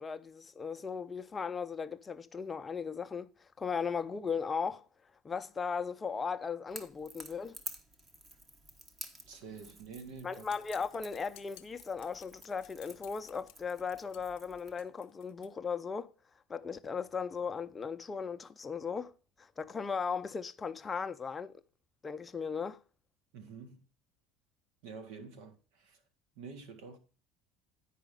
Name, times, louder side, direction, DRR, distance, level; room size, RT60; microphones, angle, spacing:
voice 1, 0.0-4.9 5.2-7.6 10.2-16.1 16.5-19.1 19.4-21.5 22.0-22.8, left 5 dB, 20° left, 0.4 m, -37 dB
Crackle / Crack, 6.7-14.8, right 2 dB, 30° right, 1.3 m, -51 dB
voice 2, 9.3-10.5 23.3-23.9 24.8-26.0 26.3-27.0, right 5 dB, 80° right, 1.6 m, -48 dB
sound 1, 10.5-15.5, left 16 dB, 75° left, 0.7 m, -58 dB
9.8 x 5.0 x 5.1 m
supercardioid pair, 120°, 0 cm